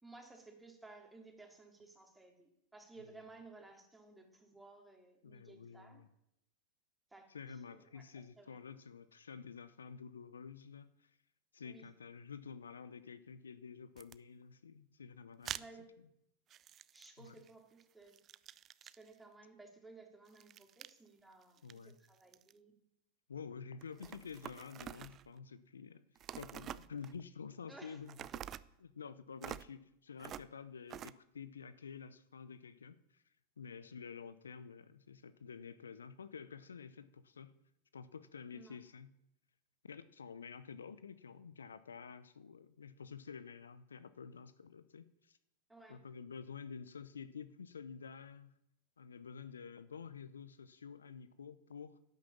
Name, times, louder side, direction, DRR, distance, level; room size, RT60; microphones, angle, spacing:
voice 1, 0.0-6.0 7.1-7.3 7.7-8.6 11.6-11.8 15.5-15.8 16.9-18.2 18.8-22.7 24.0-24.1 27.7-28.0 38.5-38.8 45.7-46.0, right 3 dB, 10° right, 2 dB, 3.1 m, -57 dB
voice 2, 5.2-6.1 7.3-11.2 11.5-15.6 17.2-17.3 21.6-22.0 23.3-26.0 26.4-28.4 28.8-33.2 33.6-37.5 37.9-39.1 39.8-45.4 45.9-48.5 49.0-52.0, left 6 dB, 80° left, 15 dB, 0.7 m, -50 dB
sound 1, 14.0-14.2 15.5-15.7 16.5-17.5 17.8-19.1 20.3-21.0 21.4-22.5 23.8-25.3 26.2-27.2 28.1-28.7 29.4-29.7 30.2-30.5 30.9-31.1, right 10 dB, 35° right, 0.5 m, -47 dB
11.0 x 9.4 x 7.4 m, 0.79 s
figure-of-eight pair, 90°, 0 cm